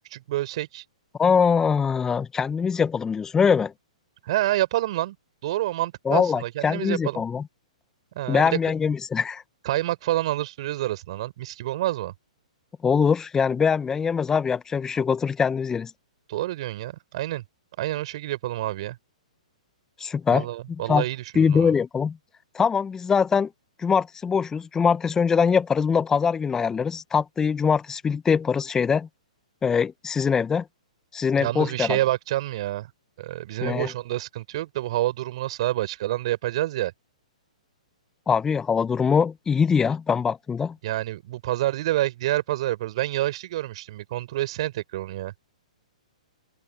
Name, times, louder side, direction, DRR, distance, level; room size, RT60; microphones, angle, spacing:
voice 1, 0.1-0.8 4.3-5.2 5.4-7.2 8.1-8.6 9.6-12.1 16.3-17.4 17.8-19.0 20.3-21.7 31.4-32.9 33.2-36.9 40.8-45.3, right 15 dB, 50° right, 4.5 m, -28 dB
voice 2, 1.2-3.7 6.0-7.5 8.3-9.4 12.8-15.9 20.0-20.5 20.9-21.0 21.3-22.2 22.5-23.5 23.8-29.1 29.6-30.6 31.1-32.0 33.6-33.9 38.3-40.8, left 6 dB, 15° left, 1.3 m, -22 dB
hypercardioid pair, 120°, 4 cm